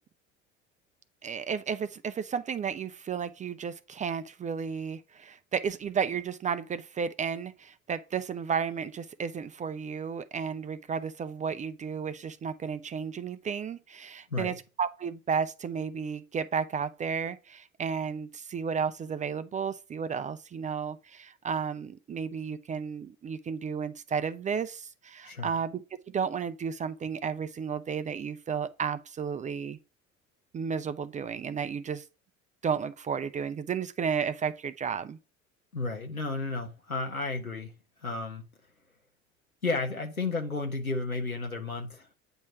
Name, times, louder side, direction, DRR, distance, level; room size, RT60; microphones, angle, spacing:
voice 1, 1.2-25.8 26.1-29.8 30.5-32.0 32.6-35.2, right 6 dB, 20° right, 0.5 m, -33 dB
voice 2, 25.2-25.6 35.7-37.7 38.0-38.4 39.6-42.1, left 3 dB, 90° left, 1.4 m, -32 dB
8.9 x 3.1 x 5.9 m
figure-of-eight pair, 65°, 41 cm